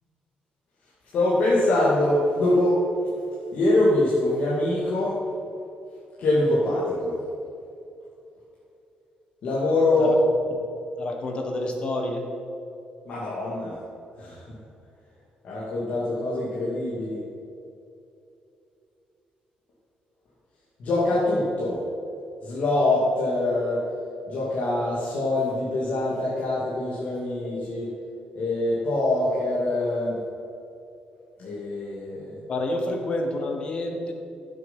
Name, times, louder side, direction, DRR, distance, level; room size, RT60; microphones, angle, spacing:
voice 1, 1.1-2.8 3.5-5.2 6.2-7.2 9.4-10.1 13.0-13.8 14.2-14.4 15.4-17.2 20.8-21.8 22.4-23.9 24.3-27.9 28.3-30.2 31.4-32.4, left 2 dB, 55° left, -7 dB, 2.6 m, -24 dB
voice 2, 11.0-12.3 32.5-34.1, left 1 dB, 35° left, 4 dB, 1.6 m, -28 dB
15.5 x 7.8 x 5.7 m, 2.7 s
cardioid pair, 160°, 3 cm